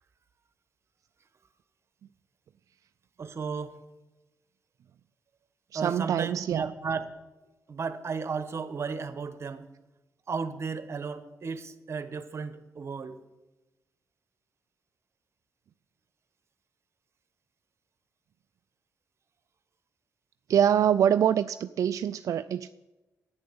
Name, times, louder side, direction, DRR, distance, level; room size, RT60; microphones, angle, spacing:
voice 1, 3.2-3.8 5.7-7.1 7.7-9.7 10.3-13.2, right 5 dB, 50° right, 12 dB, 1.2 m, -34 dB
voice 2, 5.7-6.7 20.5-22.7, right 9 dB, 70° right, 11 dB, 0.4 m, -25 dB
11.0 x 9.6 x 7.9 m, 1.1 s
cardioid pair, 80°, 6 cm